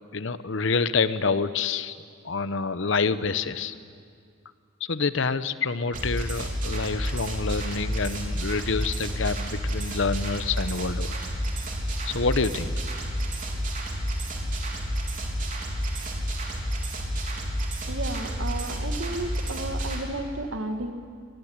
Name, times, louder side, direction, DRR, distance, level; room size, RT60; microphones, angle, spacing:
voice 1, 0.1-2.0 2.2-3.7 4.9-11.2 12.0-13.1, left 4 dB, 70° left, 13 dB, 0.9 m, -27 dB
sound 1, 5.9-20.0, equal, 45° right, 3.7 m, -30 dB
voice 2, 17.9-20.9, right 2 dB, 75° right, 6 dB, 2.0 m, -33 dB
24.5 x 20.0 x 8.8 m, 2.2 s
head